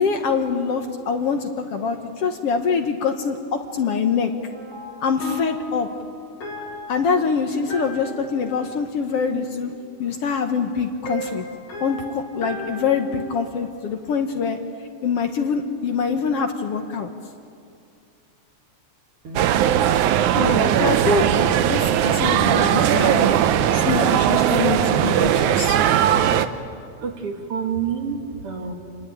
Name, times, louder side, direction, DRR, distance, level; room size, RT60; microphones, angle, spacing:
voice 1, 0.0-4.3 5.0-5.9 6.9-9.7 10.0-11.5 11.8-14.6 15.0-17.1 20.4-23.3 23.7-25.8, left 5 dB, 60° left, 5 dB, 2.0 m, -24 dB
sound 1, 4.5-9.7 11.0-13.1, left 1 dB, 80° left, 5.9 m, -36 dB
sound 2, 19.4-26.5, right 10 dB, 80° right, 2.3 m, -19 dB
voice 2, 27.0-28.7, right 6 dB, 50° right, 3 dB, 2.8 m, -32 dB
28.0 x 21.0 x 9.3 m, 2.4 s
omnidirectional pair, 3.4 m